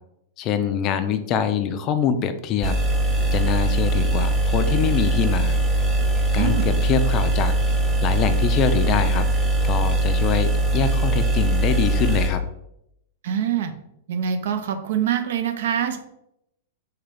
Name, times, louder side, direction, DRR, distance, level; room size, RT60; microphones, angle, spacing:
voice 1, 0.4-2.8 3.3-5.6 6.3-7.5 8.0-9.3 9.6-12.4, left 7 dB, 35° left, 10 dB, 0.3 m, -24 dB
sound 1, 2.6-12.3, right 2 dB, ahead, 0.9 m, -21 dB
voice 2, 13.2-13.7 14.1-16.0, right 8 dB, 60° right, 7 dB, 0.4 m, -24 dB
4.4 x 2.4 x 3.2 m, 0.81 s
figure-of-eight pair, 105°, 0 cm